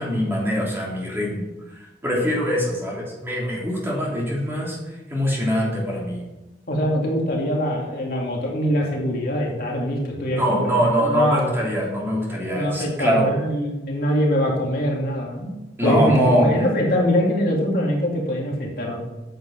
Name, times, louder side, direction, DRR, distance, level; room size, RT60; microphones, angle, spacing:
voice 1, 0.0-1.5 1.7-4.8 5.1-6.2 10.3-13.3 15.8-16.5, equal, 15° right, -4 dB, 3.4 m, -23 dB
voice 2, 6.7-11.4 12.5-15.5 15.8-19.0, equal, 55° left, -2 dB, 2.5 m, -23 dB
9.2 x 7.8 x 7.0 m, 1.0 s
head